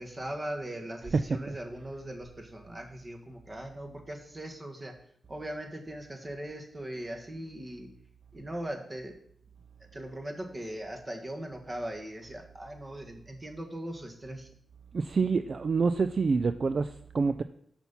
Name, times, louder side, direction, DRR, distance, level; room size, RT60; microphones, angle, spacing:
voice 1, 0.0-4.9 5.3-7.9 8.3-9.2 9.9-14.5, right 1 dB, 30° right, 3 dB, 1.5 m, -39 dB
voice 2, 1.1-1.6 14.9-17.4, right 4 dB, 55° right, 11 dB, 0.3 m, -27 dB
6.0 x 5.9 x 5.4 m, 0.66 s
cardioid pair, 55°, 0 cm